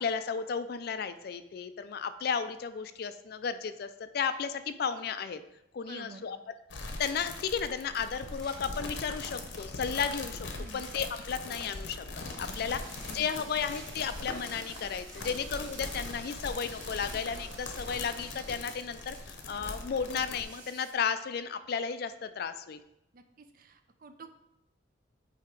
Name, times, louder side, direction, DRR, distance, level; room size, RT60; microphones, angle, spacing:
voice 1, 0.0-5.4 5.7-6.4 7.0-22.8, left 6 dB, 50° left, 11 dB, 0.3 m, -34 dB
voice 2, 5.9-6.3 10.6-10.8 13.2-13.3 23.1-24.4, right 3 dB, 45° right, 8 dB, 0.5 m, -49 dB
sound 1, 6.7-20.4, left 3 dB, 70° left, 0.8 m, -41 dB
sound 2, 8.3-16.4, equal, 5° left, 1.1 m, -56 dB
sound 3, 12.5-20.9, right 4 dB, 75° right, 1.2 m, -51 dB
8.2 x 2.8 x 4.6 m, 0.84 s
head